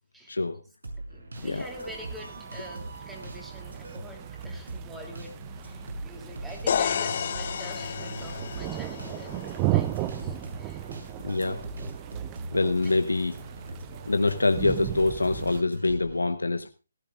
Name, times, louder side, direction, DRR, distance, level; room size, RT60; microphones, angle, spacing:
voice 1, 0.3-0.6 1.4-1.6 11.2-11.6 12.5-13.3 14.1-16.7, left 2 dB, 90° left, 8 dB, 1.1 m, -25 dB
sound 1, 0.8-16.2, right 2 dB, 80° right, 6.1 m, -41 dB
voice 2, 1.1-10.9 12.8-12.9, equal, 5° right, 1 dB, 3.0 m, -45 dB
sound 2, 1.3-15.6, right 15 dB, 20° right, 0.5 m, -36 dB
sound 3, 6.7-10.5, left 8 dB, 45° left, 0.6 m, -32 dB
18.0 x 15.0 x 2.5 m, 0.31 s
figure-of-eight pair, 150°, 0 cm